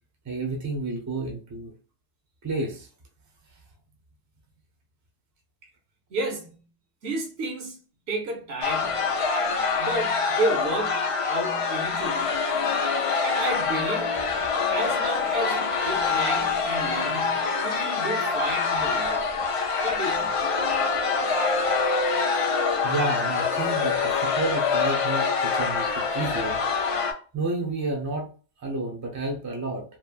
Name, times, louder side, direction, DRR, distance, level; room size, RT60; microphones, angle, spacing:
voice 1, 0.2-1.7 2.4-2.9 22.8-26.6 27.3-28.3 28.6-29.8, right 2 dB, 20° right, 0.5 m, -30 dB
voice 2, 6.1-6.6 7.0-7.8 8.1-9.1 9.8-12.4 13.2-14.3 14.7-19.2 19.8-20.4, right 2 dB, 75° right, 1.0 m, -31 dB
sound 1, 8.6-27.1, left 5 dB, 60° left, 0.3 m, -25 dB
3.1 x 2.0 x 2.3 m
omnidirectional pair, 1.1 m